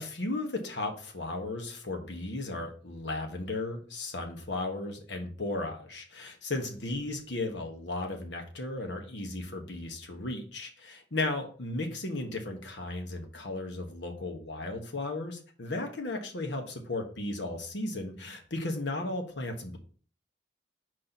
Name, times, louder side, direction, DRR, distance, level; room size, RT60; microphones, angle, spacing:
voice 1, 0.0-19.8, left 2 dB, 80° left, 4 dB, 1.5 m, -35 dB
4.9 x 4.2 x 5.9 m, 0.41 s
head